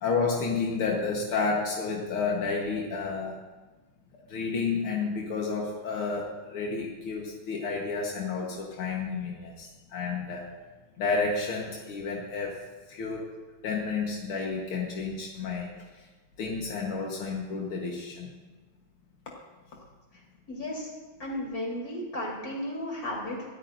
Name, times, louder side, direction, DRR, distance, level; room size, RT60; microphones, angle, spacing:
voice 1, 0.0-3.4 4.3-10.5 11.0-12.6 12.9-13.3 13.6-15.7 16.4-18.3, left 4 dB, 80° left, -2 dB, 2.3 m, -31 dB
voice 2, 20.5-20.9 21.2-23.5, left 1 dB, 40° left, -3 dB, 4.2 m, -34 dB
24.5 x 13.0 x 2.7 m, 1.3 s
omnidirectional pair, 2.3 m